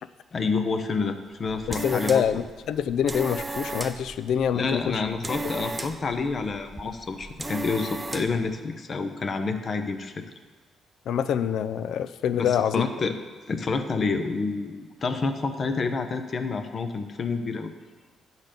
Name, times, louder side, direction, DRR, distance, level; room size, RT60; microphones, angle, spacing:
voice 1, 0.3-2.4 4.5-10.2 12.4-13.2 13.5-17.7, left 4 dB, 45° left, 7 dB, 0.7 m, -28 dB
sound 1, 1.3-8.5, right 2 dB, 15° right, 0.5 m, -36 dB
voice 2, 1.7-5.0 11.1-12.8, left 8 dB, 75° left, 12 dB, 0.4 m, -25 dB
8.8 x 4.0 x 6.6 m, 1.4 s
cardioid pair, 90°, 0 cm